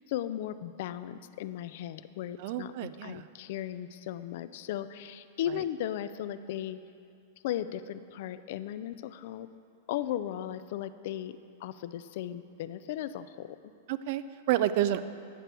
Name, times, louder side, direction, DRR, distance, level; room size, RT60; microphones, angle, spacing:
voice 1, 0.0-6.8 7.4-9.5 9.9-13.6, left 11 dB, 60° left, 13 dB, 0.3 m, -36 dB
voice 2, 2.4-3.3 5.5-5.6 13.9-15.0, right 12 dB, 55° right, 13 dB, 0.3 m, -30 dB
9.9 x 6.7 x 4.4 m, 2.5 s
hypercardioid pair, 125°, 0 cm